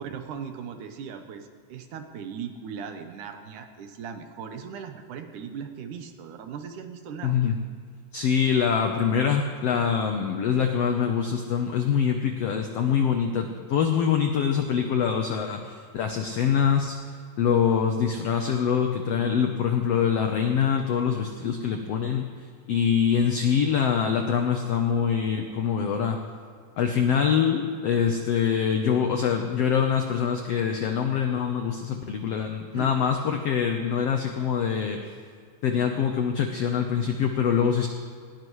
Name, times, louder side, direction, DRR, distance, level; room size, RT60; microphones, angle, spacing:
voice 1, 0.0-7.5 32.7-33.0, right 7 dB, 70° right, 6 dB, 2.3 m, -38 dB
voice 2, 7.2-7.6 8.1-17.0 17.4-22.3 22.7-26.2 26.8-35.1 35.6-37.9, left 7 dB, 80° left, 4 dB, 1.4 m, -24 dB
20.0 x 17.5 x 3.2 m, 2.2 s
omnidirectional pair, 3.9 m